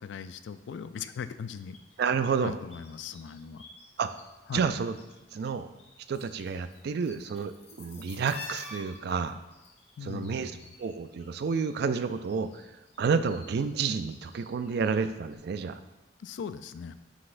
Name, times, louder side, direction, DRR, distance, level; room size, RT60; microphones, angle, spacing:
voice 1, 0.0-1.8 2.4-3.7 4.5-4.7 10.0-10.7 16.2-16.9, left 6 dB, 75° left, 12 dB, 0.3 m, -39 dB
sound 1, 1.5-4.2 4.5-5.5 5.8-11.7 12.0-15.0 15.3-15.4, left 2 dB, 35° left, 0.9 m, -49 dB
voice 2, 2.0-2.6 4.0-4.1 4.5-5.0 5.3-5.7 6.1-9.4 10.0-10.5 10.8-12.6 13.0-15.8, right 5 dB, 65° right, 11 dB, 0.3 m, -30 dB
9.6 x 4.1 x 2.6 m, 1.0 s
head